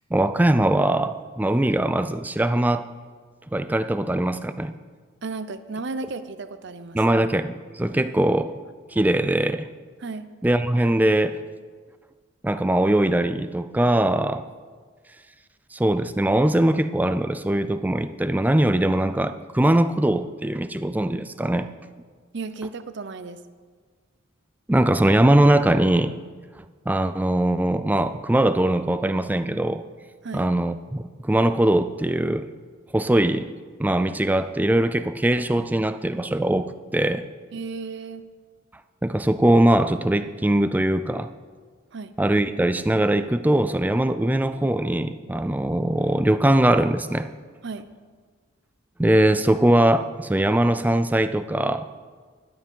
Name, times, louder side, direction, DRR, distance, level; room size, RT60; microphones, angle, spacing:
voice 1, 0.1-2.9 3.5-4.7 6.9-8.5 8.9-9.7 10.4-11.4 12.4-14.4 15.7-21.7 24.7-26.2 26.9-29.8 30.3-32.5 32.9-33.5 33.8-37.2 39.0-41.3 42.2-47.3 49.0-51.9, right 1 dB, 10° right, 11 dB, 0.3 m, -21 dB
voice 2, 5.2-7.0 10.0-10.3 22.3-23.4 30.2-30.5 37.5-38.2 41.9-42.1 47.6-47.8, right 4 dB, 55° right, 12 dB, 0.6 m, -34 dB
11.0 x 9.9 x 5.4 m, 1.5 s
head